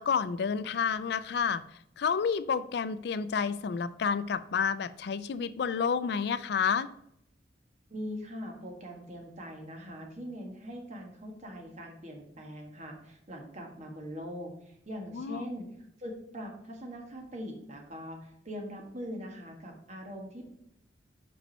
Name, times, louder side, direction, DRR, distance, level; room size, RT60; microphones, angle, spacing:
voice 1, 0.0-1.6 2.0-6.9 15.1-15.4, left 6 dB, 65° left, 15 dB, 0.4 m, -30 dB
voice 2, 7.9-15.7 16.0-20.5, equal, 40° right, 1 dB, 1.6 m, -42 dB
5.5 x 5.3 x 5.4 m, 0.76 s
head